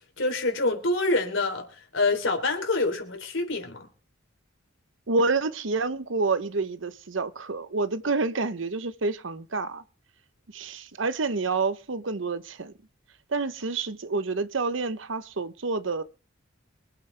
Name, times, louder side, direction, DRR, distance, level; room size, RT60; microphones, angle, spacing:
voice 1, 0.2-1.6 1.9-3.8, left 2 dB, 85° left, 3.6 m, -26 dB
voice 2, 5.1-9.8 10.5-12.7 13.3-16.0, right 3 dB, 75° right, 0.9 m, -28 dB
24.5 x 8.4 x 3.4 m
head